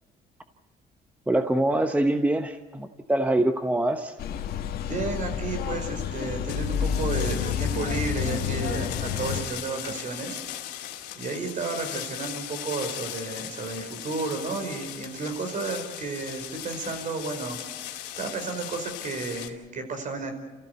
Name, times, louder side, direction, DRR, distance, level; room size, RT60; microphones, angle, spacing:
voice 1, 1.3-4.1, right 1 dB, 10° right, 7 dB, 1.0 m, -24 dB
sound 1, 4.2-9.4, left 8 dB, 65° left, 1.9 m, -29 dB
voice 2, 4.9-10.4 11.2-20.3, right 3 dB, 50° right, 6 dB, 5.3 m, -32 dB
sound 2, 6.5-19.5, left 12 dB, 85° left, 2.5 m, -38 dB
29.5 x 15.5 x 8.1 m, 1.3 s
cardioid pair, 110°, 17 cm